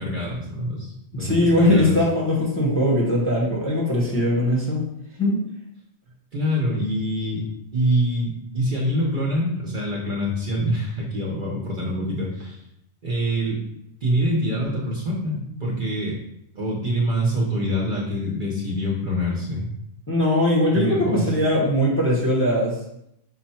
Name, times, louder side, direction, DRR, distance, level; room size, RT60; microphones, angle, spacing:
voice 1, 0.0-2.0 6.3-7.4 7.7-12.6 13.0-13.6 14.0-16.2 16.5-19.7 20.7-21.3, equal, 45° right, -4 dB, 0.8 m, -25 dB
voice 2, 1.1-4.8 5.2-5.4 20.1-22.7, left 1 dB, 10° left, -5 dB, 0.9 m, -20 dB
5.6 x 2.2 x 4.3 m, 0.80 s
omnidirectional pair, 1.3 m